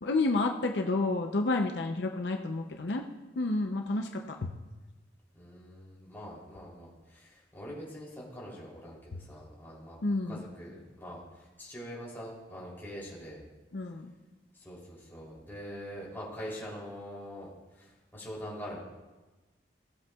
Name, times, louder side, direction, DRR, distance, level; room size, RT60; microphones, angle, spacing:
voice 1, 0.0-3.1 3.4-4.5 10.0-10.4 13.7-14.1, left 2 dB, 70° left, 3 dB, 0.6 m, -30 dB
voice 2, 5.3-10.0 10.3-13.4 14.5-18.8, equal, 15° left, -5 dB, 3.1 m, -44 dB
17.5 x 7.8 x 2.3 m, 1.2 s
head